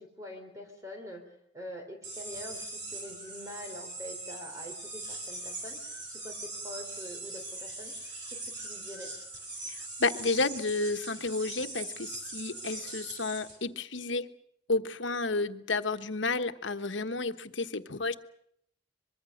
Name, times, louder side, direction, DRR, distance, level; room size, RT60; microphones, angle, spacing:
voice 1, 0.0-7.9 8.3-9.1, left 1 dB, 20° right, 3 dB, 3.6 m, -45 dB
sound 1, 2.0-13.6, right 2 dB, 70° right, 6.8 m, -41 dB
voice 2, 9.7-14.3 14.7-18.2, left 3 dB, 85° left, 9 dB, 1.3 m, -31 dB
24.0 x 22.5 x 6.5 m, 0.70 s
head